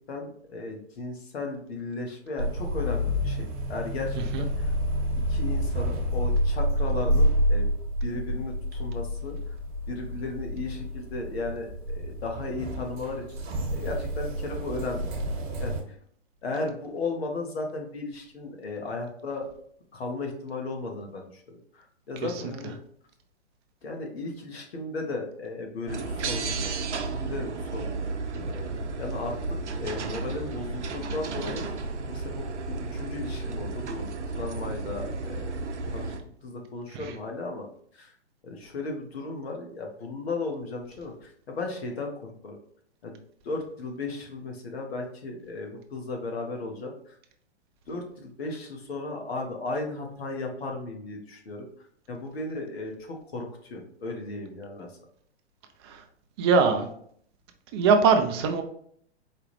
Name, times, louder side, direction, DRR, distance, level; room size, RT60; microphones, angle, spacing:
voice 1, 0.1-4.7 5.3-7.7 8.0-9.4 9.9-13.2 13.7-15.1 15.6-16.0 16.4-19.5 19.9-22.8 23.8-28.4 29.0-31.7 32.0-35.4 35.9-36.1 36.4-37.7 37.9-38.1 38.4-42.6 43.0-43.2 43.4-47.1 47.9-51.7 52.1-54.9, left 3 dB, 60° left, 2 dB, 1.2 m, -35 dB
sound 1, 2.4-15.8, equal, 45° right, 1.2 m, -28 dB
sound 2, 25.9-36.2, right 3 dB, 80° right, 0.6 m, -33 dB
voice 2, 56.4-56.9 57.7-58.6, right 5 dB, 25° right, 5 dB, 0.4 m, -22 dB
4.8 x 2.4 x 3.2 m, 0.63 s
figure-of-eight pair, 120°, 34 cm